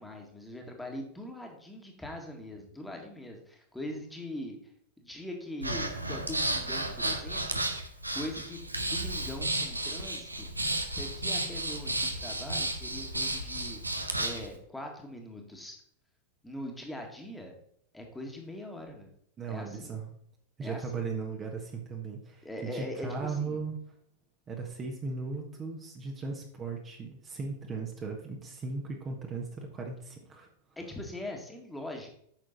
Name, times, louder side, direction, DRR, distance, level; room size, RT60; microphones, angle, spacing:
voice 1, 0.0-4.6 5.0-10.5 11.0-13.8 14.2-15.8 16.4-17.5 17.9-19.1 19.5-20.0 20.6-21.1 22.4-23.6 30.8-32.1, left 1 dB, 5° left, 2 dB, 1.9 m, -42 dB
Breathing, 5.6-14.5, right 1 dB, 85° right, 1.1 m, -33 dB
voice 2, 19.4-20.1 20.6-23.8 24.5-30.5, right 4 dB, 25° right, 1 dB, 1.4 m, -37 dB
9.1 x 6.4 x 4.1 m, 0.67 s
figure-of-eight pair, 90°, 0 cm